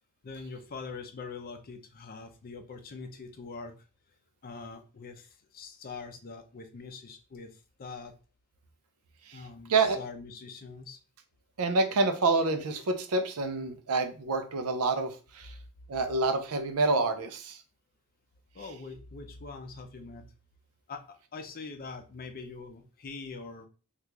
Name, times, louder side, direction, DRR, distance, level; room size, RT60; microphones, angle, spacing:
voice 1, 0.2-3.7 4.4-8.1 9.3-11.0 18.5-20.3 20.9-23.7, left 4 dB, 40° left, 7 dB, 0.5 m, -43 dB
voice 2, 11.6-15.5 15.9-17.6, right 3 dB, 75° right, 7 dB, 0.5 m, -27 dB
3.0 x 2.4 x 3.3 m, 0.35 s
head